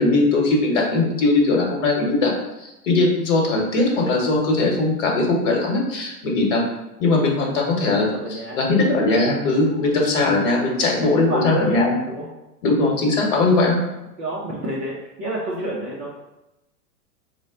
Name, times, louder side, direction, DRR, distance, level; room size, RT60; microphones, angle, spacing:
voice 1, 0.0-2.3 2.6-6.6 7.0-11.9 12.6-13.8, left 2 dB, 50° left, 0 dB, 1.2 m, -20 dB
voice 2, 8.1-8.6 9.6-9.9 10.7-11.8 12.1-12.3 14.2-16.1, right 1 dB, 20° right, -6 dB, 0.4 m, -30 dB
3.9 x 2.2 x 3.7 m, 0.95 s
figure-of-eight pair, 100°, 47 cm